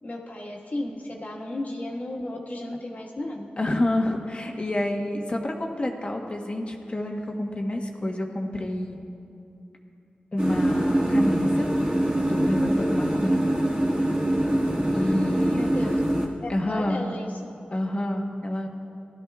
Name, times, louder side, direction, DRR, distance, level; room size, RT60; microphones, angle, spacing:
voice 1, 0.0-3.5 15.5-16.0 16.4-17.5, left 1 dB, 55° left, -2 dB, 1.7 m, -34 dB
voice 2, 3.6-9.0 10.3-11.7 12.1-13.4 14.9-15.7 16.5-17.1 17.7-18.7, left 1 dB, 35° left, 2 dB, 1.4 m, -28 dB
sound 1, 10.4-16.3, right 1 dB, 30° right, 2.0 m, -23 dB
17.0 x 12.5 x 2.4 m, 2.6 s
cardioid pair, 45°, 3 cm